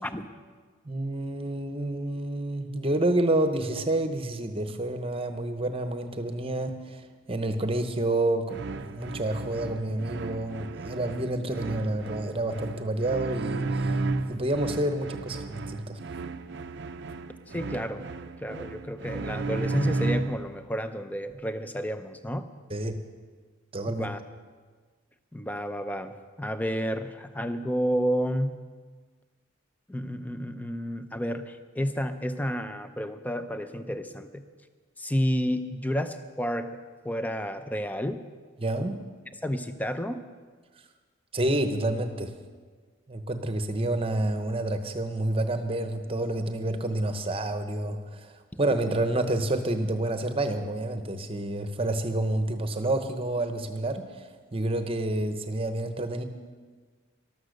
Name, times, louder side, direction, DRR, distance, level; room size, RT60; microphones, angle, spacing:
voice 1, 0.9-7.0 7.3-13.9 14.3-16.0 22.7-22.9 23.7-24.1 38.6-39.0 41.3-42.3 43.1-48.3 48.6-54.0 54.5-56.2, right 1 dB, 25° right, 8 dB, 0.9 m, -29 dB
sound 1, 8.5-20.5, right 3 dB, 55° right, 0.5 m, -33 dB
voice 2, 17.5-18.1 18.4-22.5 23.9-24.2 25.3-28.5 29.9-34.4 35.0-36.8 37.0-38.2 39.4-40.2, equal, 10° left, 9 dB, 0.6 m, -30 dB
13.0 x 12.5 x 6.6 m, 1.5 s
head